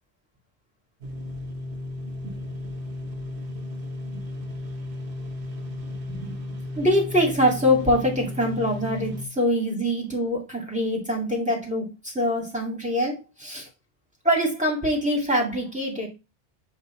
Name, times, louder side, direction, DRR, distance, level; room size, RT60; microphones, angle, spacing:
sound 1, 1.0-9.2, left 2 dB, 55° right, 1.2 m, -34 dB
voice 1, 6.8-13.7 14.2-16.1, equal, 5° right, -1 dB, 2.1 m, -24 dB
8.0 x 3.0 x 4.3 m, 0.27 s
omnidirectional pair, 1.1 m